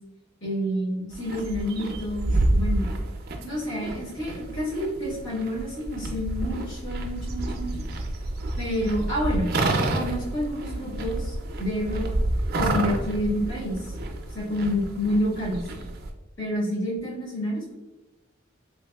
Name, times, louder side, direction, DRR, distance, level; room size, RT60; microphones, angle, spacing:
voice 1, 0.4-2.9 3.4-7.8 8.6-9.5 9.9-12.1 12.5-13.9 14.3-15.7 16.4-17.7, equal, 70° left, -6 dB, 1.3 m, -29 dB
sound 1, 1.1-16.1, right 2 dB, 50° right, 0.4 m, -29 dB
3.4 x 3.0 x 2.3 m, 1.1 s
head